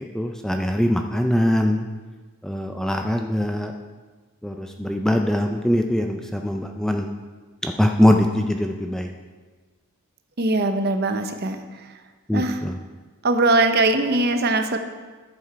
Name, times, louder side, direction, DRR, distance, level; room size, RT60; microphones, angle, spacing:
voice 1, 0.0-1.8 2.4-3.7 4.4-7.1 7.6-9.1 12.3-12.8, left 1 dB, ahead, 4 dB, 0.4 m, -22 dB
voice 2, 10.4-11.9 12.3-12.6 13.2-14.8, right 2 dB, 45° right, 7 dB, 0.7 m, -21 dB
11.0 x 7.1 x 4.6 m, 1.4 s
head